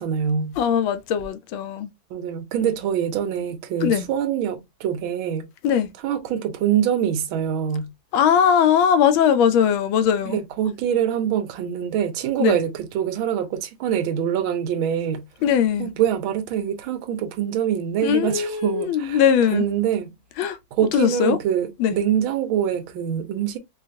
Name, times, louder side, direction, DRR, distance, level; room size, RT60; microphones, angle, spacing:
voice 1, 0.0-0.6 2.1-5.5 6.0-7.9 10.3-15.3 15.8-19.2 19.5-20.1 20.8-23.6, right 9 dB, 85° right, 1.5 m, -24 dB
voice 2, 0.6-1.9 3.8-4.1 5.6-5.9 8.1-10.4 12.4-12.6 15.4-15.9 18.0-19.7 20.4-20.6 20.9-21.4 21.8-22.0, left 8 dB, 85° left, 1.4 m, -20 dB
4.7 x 2.4 x 2.6 m
omnidirectional pair, 2.2 m